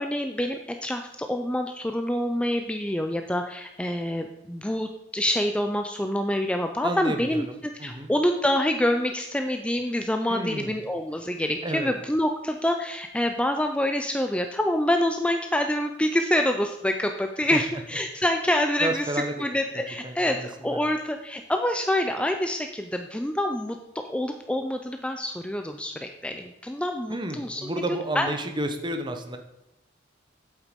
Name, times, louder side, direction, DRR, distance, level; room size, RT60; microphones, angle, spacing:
voice 1, 0.0-7.4 7.8-27.7 28.2-28.3, left 1 dB, 5° left, 5 dB, 0.5 m, -26 dB
voice 2, 6.8-8.1 10.3-10.7 11.6-11.9 17.5-17.6 18.8-19.3 20.0-20.8 27.1-29.4, right 1 dB, 25° right, 6 dB, 1.0 m, -31 dB
8.3 x 8.2 x 5.2 m, 0.87 s
head